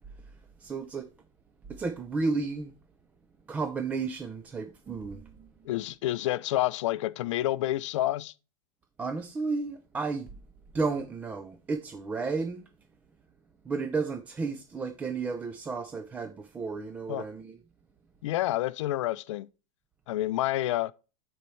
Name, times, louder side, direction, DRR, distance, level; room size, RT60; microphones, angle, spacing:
voice 1, 0.6-1.1 1.7-2.7 3.5-5.5 9.0-10.3 10.7-12.6 13.7-17.6, right 4 dB, 10° right, 0.3 m, -32 dB
voice 2, 5.7-8.3 17.1-17.2 18.2-19.5 20.1-20.9, left 15 dB, 60° left, 0.5 m, -29 dB
12.0 x 4.4 x 3.1 m
supercardioid pair, 165°, 18 cm